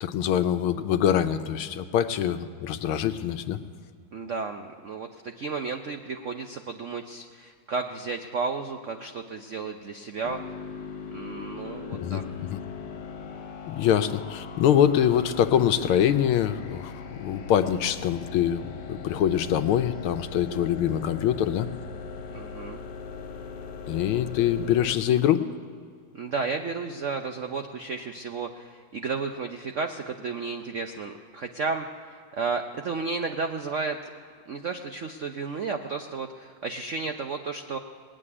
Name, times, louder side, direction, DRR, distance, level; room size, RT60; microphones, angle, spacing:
voice 1, 0.0-3.6 12.0-12.6 13.7-18.6 18.9-21.7 23.9-25.4, left 10 dB, 85° left, 10 dB, 1.6 m, -24 dB
voice 2, 4.1-10.4 11.1-12.2 22.3-22.8 26.1-34.0 34.5-37.8, right 4 dB, 90° right, 6 dB, 0.6 m, -33 dB
sound 1, 10.2-25.0, left 5 dB, 55° left, 1.6 m, -40 dB
19.5 x 7.6 x 9.8 m, 2.1 s
omnidirectional pair, 2.3 m